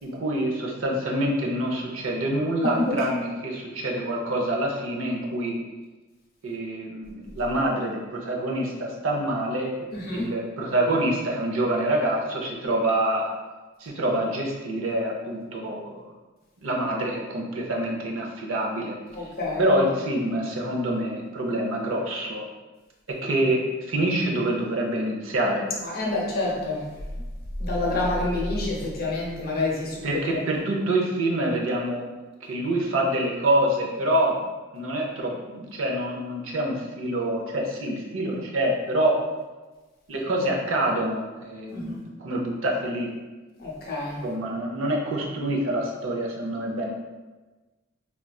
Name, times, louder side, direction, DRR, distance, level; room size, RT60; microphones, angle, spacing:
voice 1, 0.0-5.6 6.4-9.7 10.1-13.3 13.8-16.0 16.6-19.0 19.6-22.4 23.2-23.6 23.9-25.6 30.0-32.1 32.4-34.4 34.7-39.2 40.1-43.1 44.2-46.9, right 1 dB, 75° right, -1 dB, 0.6 m, -26 dB
voice 2, 2.6-3.0 9.9-10.3 19.1-19.7 25.8-26.9 27.6-30.0 30.3-30.4 41.7-42.0 43.6-44.2, left 2 dB, 50° left, -3 dB, 0.7 m, -28 dB
3.6 x 2.3 x 2.3 m, 1.2 s
head